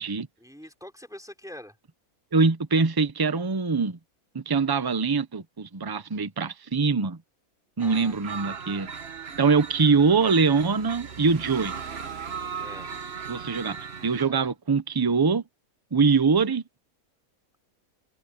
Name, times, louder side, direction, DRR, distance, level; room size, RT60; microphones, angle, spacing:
voice 1, 0.4-1.8 7.8-8.1 12.6-12.9 14.2-14.5, left 1 dB, ahead, 3.3 m, -44 dB
voice 2, 2.3-4.0 4.3-7.2 7.8-8.9 9.4-11.7 13.3-13.8 14.0-15.4 15.9-16.6, right 4 dB, 20° right, 0.6 m, -23 dB
sound 1, 7.8-14.2, right 6 dB, 45° right, 1.3 m, -37 dB
omnidirectional pair, 1.6 m